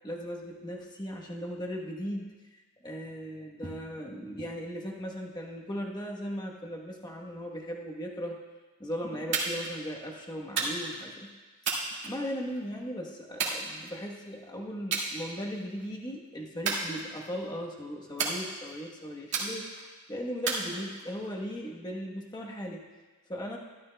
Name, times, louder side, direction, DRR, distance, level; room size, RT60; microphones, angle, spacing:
voice 1, 0.0-2.3 2.8-8.4 8.8-11.3 12.0-19.7 20.1-22.9 23.3-23.6, equal, 20° left, -1 dB, 1.0 m, -37 dB
sound 1, 9.3-9.7 10.6-11.0 11.6-12.6 13.4-14.2 14.9-15.1 15.5-15.9 16.6-17.4 18.2-18.8 19.3-19.9 20.5-21.3, right 4 dB, 55° right, 2.0 m, -32 dB
13.0 x 12.0 x 2.2 m, 1.3 s
head